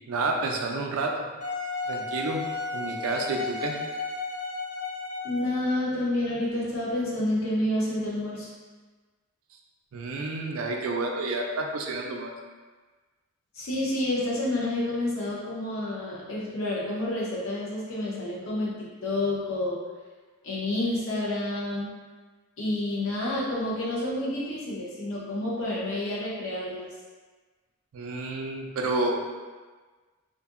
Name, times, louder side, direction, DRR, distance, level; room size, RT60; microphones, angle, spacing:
voice 1, 0.1-1.3 1.9-2.4 2.7-3.8 9.9-12.3 27.9-29.2, right 2 dB, 80° right, 2 dB, 0.4 m, -29 dB
Wind instrument woodwind instrument, 1.4-5.9, left 3 dB, 35° left, 0.3 m, -34 dB
voice 2, 5.2-8.5 13.5-19.8 20.4-21.9 22.6-26.9, left 1 dB, 70° left, -5 dB, 0.7 m, -29 dB
2.6 x 2.5 x 2.4 m, 1.4 s
head